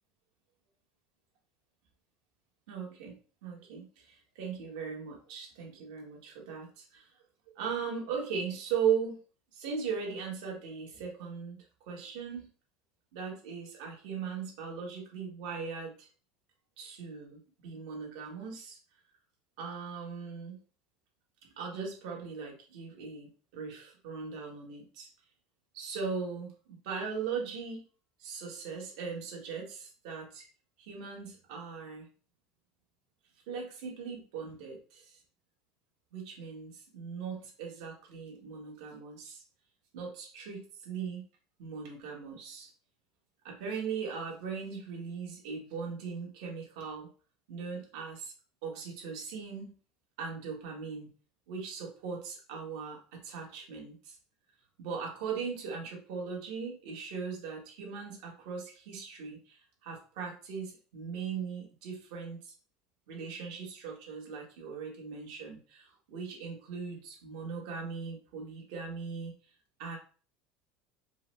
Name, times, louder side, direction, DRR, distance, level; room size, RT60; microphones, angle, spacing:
voice 1, 2.7-3.2 3.4-7.1 7.5-9.2 9.5-12.5 13.1-16.1 16.8-18.8 19.6-20.6 21.6-25.1 25.7-27.8 28.2-30.5 30.8-32.1 33.5-35.2 36.1-39.4 39.9-41.2 41.6-42.7 43.4-47.1 47.5-48.3 48.6-49.7 50.2-51.1 51.5-54.2 54.8-62.5 63.1-69.3 69.8-70.0, right 6 dB, 75° right, 0 dB, 1.5 m, -39 dB
4.6 x 2.1 x 3.2 m, 0.39 s
supercardioid pair, 135°, 3 cm